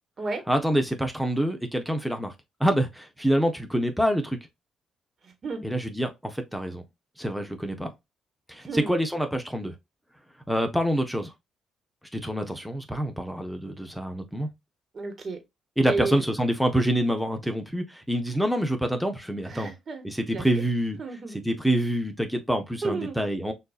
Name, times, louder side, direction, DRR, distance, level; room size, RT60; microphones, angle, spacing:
voice 1, 0.5-2.3 2.6-4.4 5.6-6.8 7.2-7.9 8.5-9.7 10.5-11.3 12.1-14.5 15.8-19.7 20.0-23.5, right 1 dB, ahead, 0.9 m, -26 dB
voice 2, 5.2-5.6 8.6-9.0 14.9-15.4 15.9-16.2 19.5-20.0 20.3-20.6 21.0-21.4 22.8-23.2, right 3 dB, 45° right, 1.5 m, -32 dB
6.3 x 2.7 x 2.4 m
cardioid pair, 90°, 0 cm